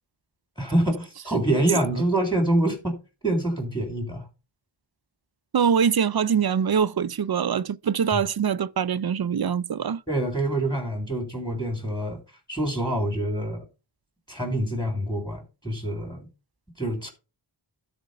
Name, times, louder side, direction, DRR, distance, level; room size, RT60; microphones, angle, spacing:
voice 1, 0.6-3.0 3.2-4.3 10.1-12.2 12.5-13.6 14.3-16.3 16.8-17.1, right 1 dB, 10° left, 3.6 m, -26 dB
voice 2, 5.5-10.0, right 7 dB, 50° right, 0.5 m, -23 dB
12.0 x 4.3 x 5.3 m
wide cardioid pair, 40°, 48 cm